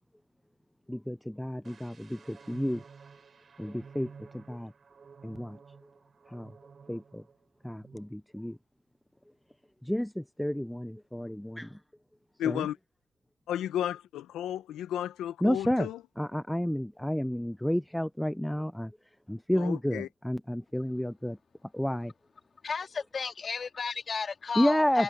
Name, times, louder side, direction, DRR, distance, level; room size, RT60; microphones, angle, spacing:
voice 1, 0.9-2.8 3.6-4.7 5.2-5.6 6.3-6.5 6.9-7.2 7.6-8.6 9.8-11.8 12.5-12.7 15.4-15.9 16.2-18.9 19.3-21.4 21.7-22.1 24.6-25.0, equal, 5° left, 0.6 m, -31 dB
sound 1, 1.6-7.4 7.7-8.0, right 5 dB, 40° right, 6.8 m, -52 dB
voice 2, 12.4-12.8 13.5-16.0 19.6-20.1, left 11 dB, 80° left, 0.9 m, -33 dB
voice 3, 22.6-25.0, left 5 dB, 40° left, 2.9 m, -33 dB
cardioid pair, 90°, 0 cm